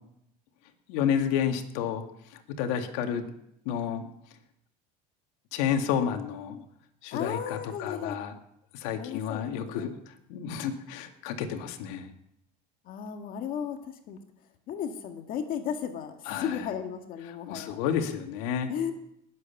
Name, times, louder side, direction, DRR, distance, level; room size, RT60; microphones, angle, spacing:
voice 1, 0.9-2.0 2.6-3.3 3.7-4.1 5.5-6.6 7.0-8.3 8.7-12.1 16.3-16.6 17.5-18.7, left 8 dB, 75° left, 5 dB, 2.1 m, -30 dB
voice 2, 7.1-8.2 9.0-9.9 12.8-14.2 14.7-17.8 18.7-18.9, left 8 dB, 50° left, 5 dB, 1.8 m, -35 dB
19.5 x 8.0 x 7.1 m, 0.77 s
supercardioid pair, 130°, 19 cm